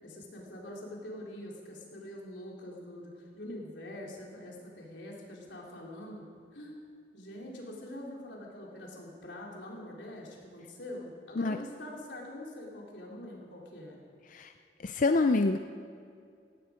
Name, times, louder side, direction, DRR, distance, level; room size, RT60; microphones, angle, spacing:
voice 1, 0.0-6.2 6.5-6.7 7.1-14.0, left 1 dB, 90° left, -2 dB, 3.7 m, -44 dB
voice 2, 14.8-15.6, left 3 dB, 45° left, 7 dB, 0.5 m, -26 dB
17.5 x 15.5 x 5.1 m, 2.3 s
head